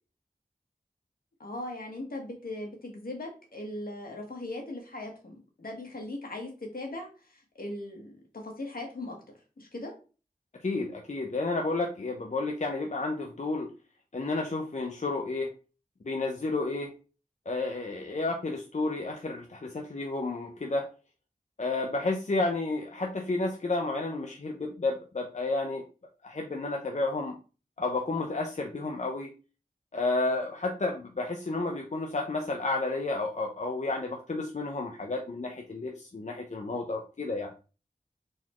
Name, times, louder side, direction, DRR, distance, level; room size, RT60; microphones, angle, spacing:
voice 1, 1.4-9.2 9.6-9.9, left 2 dB, 70° left, 1 dB, 1.5 m, -39 dB
voice 2, 10.6-13.7 14.1-15.5 16.0-16.9 17.5-20.9 21.6-25.8 26.2-27.4 27.8-29.3 29.9-37.5, left 2 dB, 50° left, 2 dB, 0.7 m, -31 dB
4.2 x 3.8 x 3.0 m, 0.34 s
cardioid pair, 40°, 15 cm